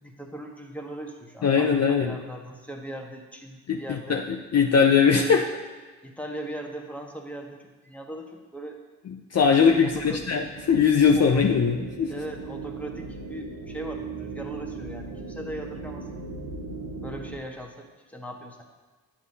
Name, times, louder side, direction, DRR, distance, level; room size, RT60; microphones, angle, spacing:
voice 1, 0.0-4.3 6.0-8.8 9.8-10.2 11.1-11.4 12.1-16.1 17.0-18.6, right 1 dB, 5° left, 1 dB, 1.3 m, -39 dB
voice 2, 1.4-2.2 3.7-4.2 4.5-5.5 9.1-12.1, left 6 dB, 40° left, 3 dB, 0.6 m, -21 dB
sound 1, 9.4-17.4, right 3 dB, 70° right, 1.1 m, -38 dB
9.2 x 7.2 x 2.8 m, 1.3 s
supercardioid pair, 50°, 39 cm